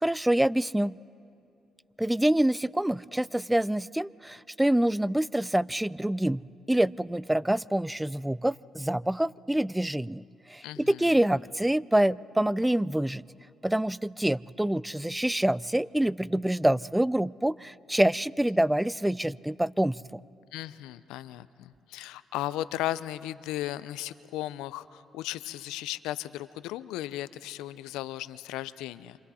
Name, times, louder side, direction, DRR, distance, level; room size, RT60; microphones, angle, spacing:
voice 1, 0.0-1.0 2.0-6.4 6.7-10.2 10.5-13.2 13.6-20.2, right 1 dB, 10° right, 21 dB, 0.4 m, -26 dB
voice 2, 10.6-11.1 20.5-29.2, left 14 dB, 85° left, 16 dB, 0.5 m, -36 dB
28.5 x 26.5 x 4.2 m, 2.7 s
hypercardioid pair, 50°, 0 cm